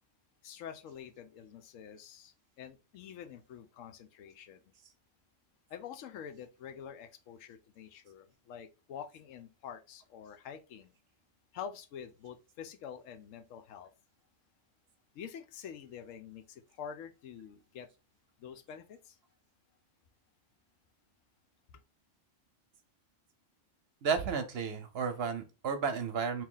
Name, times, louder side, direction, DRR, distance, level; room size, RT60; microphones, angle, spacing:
voice 1, 0.4-4.6 5.7-10.9 11.5-13.9 15.1-17.9 18.4-19.2 21.7-21.8, left 8 dB, 90° left, 1.0 m, -47 dB
voice 2, 24.0-26.4, right 6 dB, 60° right, 0.8 m, -33 dB
3.0 x 2.8 x 3.7 m
omnidirectional pair, 1.3 m